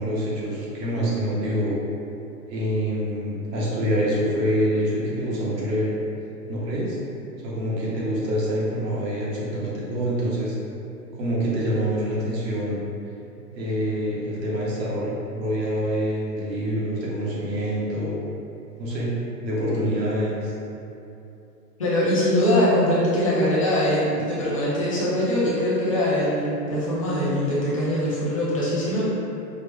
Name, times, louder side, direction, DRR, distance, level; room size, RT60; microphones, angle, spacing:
voice 1, 0.0-1.8 2.5-5.9 6.5-7.0 7.4-10.5 11.1-12.8 13.5-18.2 18.8-19.1 19.4-20.5, equal, 80° right, -6 dB, 1.3 m, -26 dB
voice 2, 21.8-29.0, left 1 dB, 25° left, -9 dB, 0.4 m, -22 dB
4.5 x 2.0 x 3.2 m, 2.8 s
hypercardioid pair, 150°, 49 cm